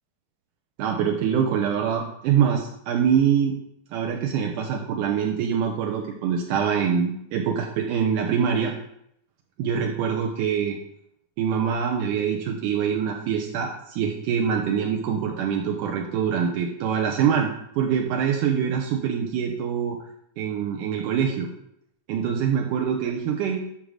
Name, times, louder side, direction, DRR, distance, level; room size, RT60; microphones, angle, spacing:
voice 1, 0.8-3.6 3.9-8.7 9.6-10.8 11.4-20.0 20.4-21.5 22.1-23.6, right 7 dB, 80° right, 1 dB, 2.2 m, -24 dB
10.5 x 3.7 x 6.4 m, 0.74 s
omnidirectional pair, 3.7 m